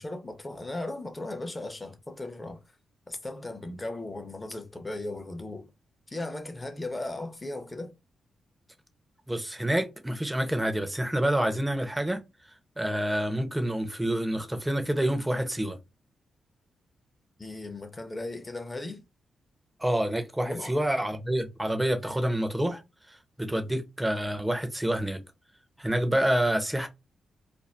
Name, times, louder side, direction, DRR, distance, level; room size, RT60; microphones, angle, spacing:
voice 1, 0.0-2.6 3.1-5.7 6.1-7.9 17.4-19.0 20.4-20.8, left 2 dB, 25° left, 0.8 m, -37 dB
voice 2, 9.3-12.2 12.8-15.8 19.8-22.8 23.1-25.2 25.8-26.9, right 1 dB, 10° right, 0.7 m, -28 dB
2.6 x 2.1 x 3.2 m
cardioid pair, 60°, 0 cm